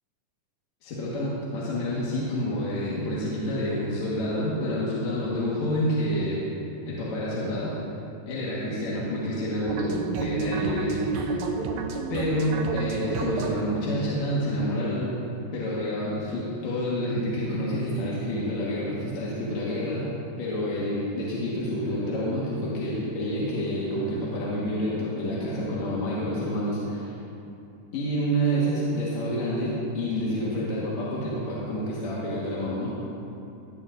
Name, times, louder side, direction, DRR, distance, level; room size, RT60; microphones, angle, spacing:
voice 1, 0.8-6.4 6.9-7.7 8.3-11.5 12.1-15.1 15.5-20.1 20.4-27.1 27.9-32.9, equal, 60° left, -8 dB, 2.5 m, -28 dB
sound 1, 9.7-15.4, right 4 dB, 75° right, 1.7 m, -31 dB
17.0 x 9.9 x 2.5 m, 2.7 s
omnidirectional pair, 4.0 m